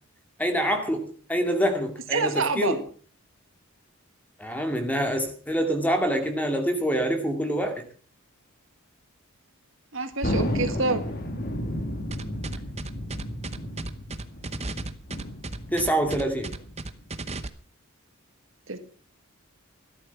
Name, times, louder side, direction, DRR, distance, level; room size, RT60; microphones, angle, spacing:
voice 1, 0.4-2.8 4.4-7.8 15.7-16.5, equal, 5° left, 5 dB, 2.3 m, -26 dB
voice 2, 2.1-2.8 9.9-11.0 18.7-18.8, right 3 dB, 60° right, 8 dB, 1.7 m, -27 dB
Thunder, 10.2-17.1, left 1 dB, 45° left, 2.2 m, -32 dB
sound 1, 12.1-17.5, right 2 dB, 30° right, 0.9 m, -35 dB
13.5 x 11.5 x 5.9 m, 0.42 s
head